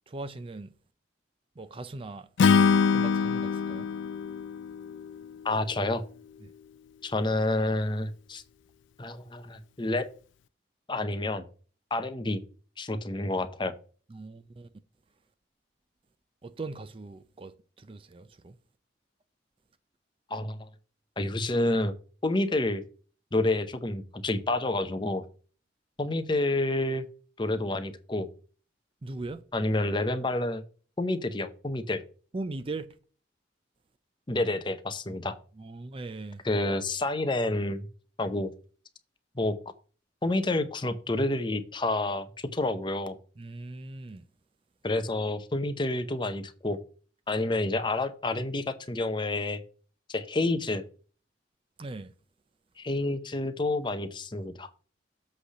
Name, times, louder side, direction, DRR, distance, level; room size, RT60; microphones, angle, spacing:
voice 1, 0.1-0.7 1.6-2.3 2.9-3.9 14.1-14.7 16.4-17.5 17.8-18.5 29.0-29.4 32.3-32.9 35.1-35.2 35.6-36.4 43.4-44.2 51.8-52.1, right 2 dB, 30° right, 0.4 m, -39 dB
Acoustic guitar / Strum, 2.4-5.7, left 5 dB, 80° left, 0.4 m, -24 dB
voice 2, 5.4-6.0 7.0-8.4 9.0-10.1 10.9-11.4 11.9-12.4 12.8-13.7 20.3-20.7 21.2-21.9 22.2-22.8 23.3-25.2 26.0-27.1 27.4-28.3 29.5-30.6 31.0-32.0 34.3-35.4 36.4-37.9 38.2-38.5 39.4-39.5 40.2-43.2 44.8-46.8 47.3-49.6 50.1-50.8 52.8-54.7, left 2 dB, 25° left, 0.7 m, -29 dB
7.7 x 3.3 x 6.4 m
head